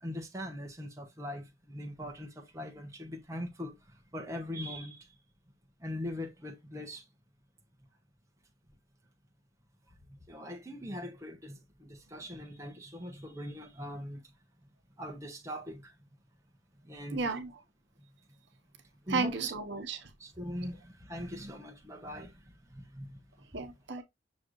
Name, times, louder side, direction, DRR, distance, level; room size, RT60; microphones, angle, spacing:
voice 1, 0.0-5.1 5.8-7.1 10.3-14.2 15.0-15.9 16.8-17.3 19.1-19.5 20.2-22.4 22.7-23.2 23.5-23.7, equal, 15° right, 0.9 m, -41 dB
voice 2, 17.1-17.5 19.1-20.1 23.5-24.0, right 4 dB, 65° right, 1.0 m, -33 dB
6.3 x 3.1 x 2.6 m
head